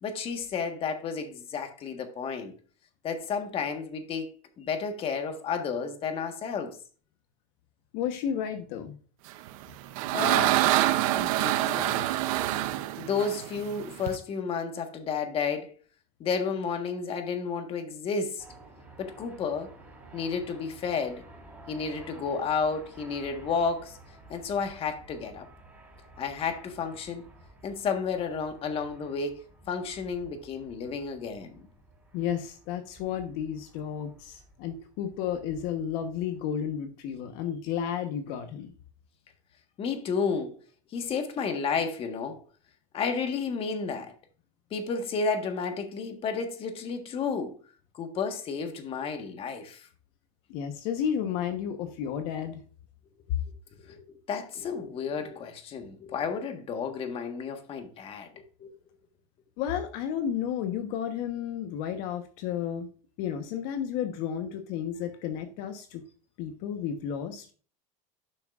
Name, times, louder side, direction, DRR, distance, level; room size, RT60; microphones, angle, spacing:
voice 1, 0.0-2.5 3.0-6.8 10.1-10.8 11.1-12.1 13.0-15.7 16.2-18.4 19.0-19.7 20.1-21.2 21.7-24.0 24.3-25.5 26.2-27.2 27.6-31.7 39.8-40.6 40.9-42.4 42.9-44.1 44.7-47.6 47.9-49.9 53.9-58.8, left 5 dB, 30° left, 1.5 m, -32 dB
voice 2, 7.9-9.0 32.1-38.7 50.5-52.6 59.6-62.9 63.2-66.0 66.4-67.5, left 9 dB, 60° left, 1.2 m, -32 dB
sound 1, 9.5-14.2, right 15 dB, 75° right, 0.7 m, -26 dB
sound 2, 18.4-36.4, right 2 dB, 5° right, 3.5 m, -53 dB
11.5 x 6.1 x 2.5 m
supercardioid pair, 140°, 18 cm